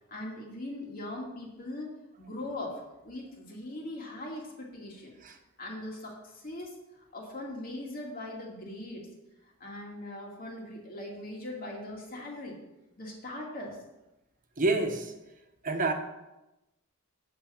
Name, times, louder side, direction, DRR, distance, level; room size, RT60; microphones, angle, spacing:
voice 1, 0.1-5.2 5.6-6.8 7.1-9.1 9.6-12.6 13.0-13.8, left 1 dB, 45° left, -1 dB, 2.4 m, -40 dB
voice 2, 14.6-15.1 15.6-15.9, right 3 dB, 40° right, 4 dB, 1.2 m, -27 dB
8.7 x 7.5 x 5.7 m, 0.98 s
head